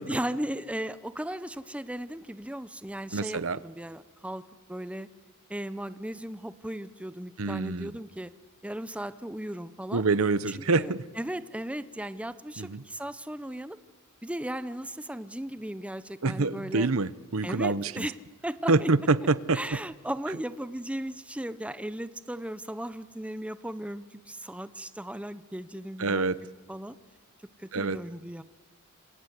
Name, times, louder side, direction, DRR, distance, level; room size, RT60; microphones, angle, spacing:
voice 1, 0.0-5.1 5.5-8.3 8.6-10.0 10.5-13.8 14.2-16.9 17.4-18.2 18.4-18.9 19.5-26.3 26.7-27.0 27.6-28.4, right 1 dB, 5° right, 13 dB, 0.8 m, -36 dB
voice 2, 3.1-3.6 7.4-8.0 9.9-11.0 12.6-12.8 16.2-18.1 18.7-19.8 26.0-26.4 27.7-28.0, right 3 dB, 70° right, 17 dB, 0.9 m, -26 dB
27.5 x 26.5 x 8.3 m, 1.3 s
head